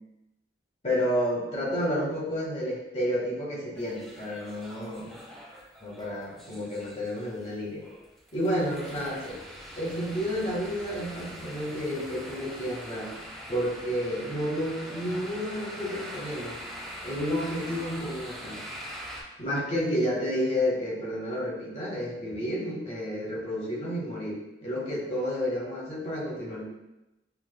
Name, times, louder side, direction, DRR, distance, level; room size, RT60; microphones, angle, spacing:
voice 1, 0.8-5.2 5.8-7.8 8.3-9.3 9.8-13.1 13.5-16.6 17.0-18.6 19.4-26.7, equal, 35° left, -4 dB, 1.1 m, -30 dB
sound 1, 3.7-19.2, equal, ahead, 0.9 m, -43 dB
6.9 x 2.4 x 2.2 m, 0.93 s
head